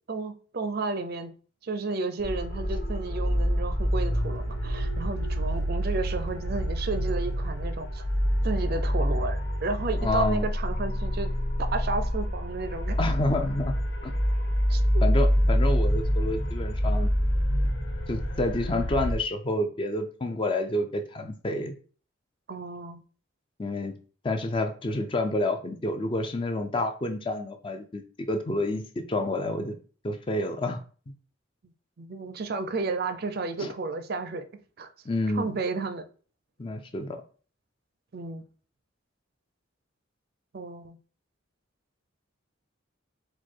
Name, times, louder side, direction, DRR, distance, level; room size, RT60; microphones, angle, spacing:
voice 1, 0.1-1.3 1.6-8.0 8.4-11.3 11.6-13.0 14.7-15.0 22.5-23.0 32.0-34.4 34.8-34.9 35.3-36.0 38.1-38.4 40.5-41.0, right 3 dB, 50° right, 9 dB, 0.5 m, -32 dB
sound 1, 2.2-19.1, equal, 65° left, 0.9 m, -27 dB
voice 2, 10.0-10.5 13.0-13.8 14.0-14.1 15.0-17.1 18.1-21.8 23.6-24.0 24.2-28.0 28.3-29.8 30.0-30.8 33.6-33.7 35.1-35.6 36.6-37.2, left 1 dB, 25° left, 7 dB, 0.4 m, -29 dB
4.5 x 2.3 x 4.4 m, 0.40 s
head